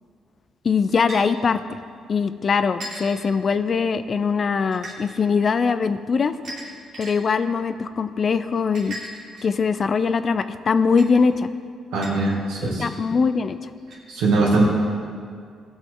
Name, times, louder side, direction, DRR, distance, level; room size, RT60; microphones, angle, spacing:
voice 1, 0.6-1.6 2.1-6.3 7.0-9.0 9.4-11.5 12.8-13.6, left 5 dB, 45° left, 12 dB, 0.5 m, -21 dB
sound 1, 1.1-1.2 2.8-3.1 4.7-5.0 6.4-7.1 8.7-9.6 11.0-11.1 12.0-12.1 12.9-13.0 13.9-14.0, right 1 dB, 70° right, 2.8 m, -36 dB
voice 2, 11.9-12.9 14.1-14.6, right 3 dB, 90° right, -3 dB, 2.3 m, -21 dB
16.5 x 6.3 x 3.9 m, 2.2 s
cardioid pair, 90°, 0 cm